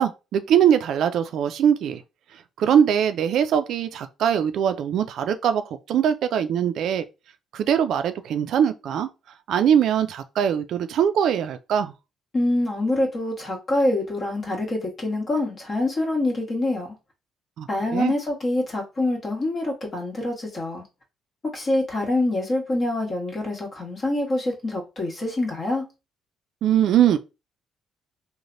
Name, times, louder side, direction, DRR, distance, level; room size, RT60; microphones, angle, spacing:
voice 1, 0.0-2.0 2.6-5.6 5.9-7.0 7.5-9.1 9.5-11.9 17.6-18.1 26.6-27.2, right 9 dB, 70° right, 0.3 m, -21 dB
voice 2, 12.3-16.9 17.7-20.8 21.5-25.8, left 1 dB, 40° left, 1.3 m, -25 dB
3.1 x 2.1 x 2.5 m
cardioid pair, 90°, 0 cm